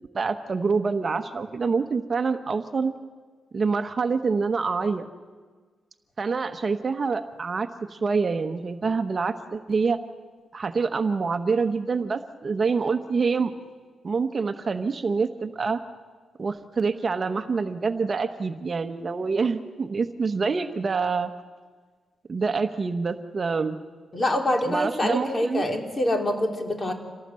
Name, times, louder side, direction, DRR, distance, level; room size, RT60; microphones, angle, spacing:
voice 1, 0.1-2.9 3.5-5.1 6.2-10.0 10.5-13.5 14.0-15.8 16.4-21.3 22.3-23.8 24.6-25.7, right 4 dB, 40° right, 8 dB, 1.2 m, -26 dB
voice 2, 24.1-26.9, left 1 dB, 30° left, 3 dB, 3.4 m, -25 dB
27.5 x 18.0 x 7.7 m, 1.5 s
cardioid pair, 85°, 0 cm